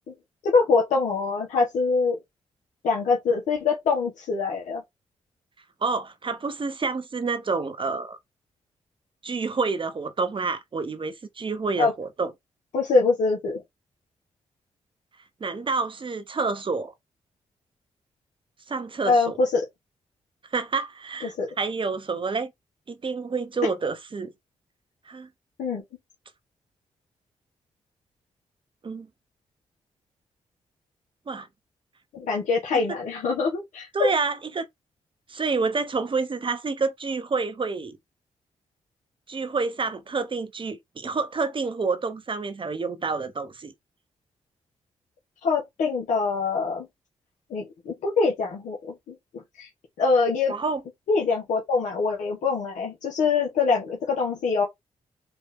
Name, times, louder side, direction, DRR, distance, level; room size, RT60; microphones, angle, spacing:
voice 1, 0.4-2.2 2.8-4.8 11.8-11.9 12.7-13.6 19.1-19.6 21.2-21.5 25.6-25.8 32.1-34.1 45.4-46.9 47.5-49.1 49.5-49.7 50.0-50.5 51.1-54.6, left 4 dB, 80° left, 1.3 m, -24 dB
voice 2, 5.8-8.2 9.2-12.3 15.4-16.9 18.7-19.3 20.5-22.5 22.9-24.3 25.1-25.3 28.8-29.1 31.3-31.5 33.9-34.7 35.3-38.0 39.3-43.7 50.5-50.8, right 4 dB, 40° right, 1.0 m, -28 dB
4.5 x 2.7 x 3.6 m
supercardioid pair, 55°, 13 cm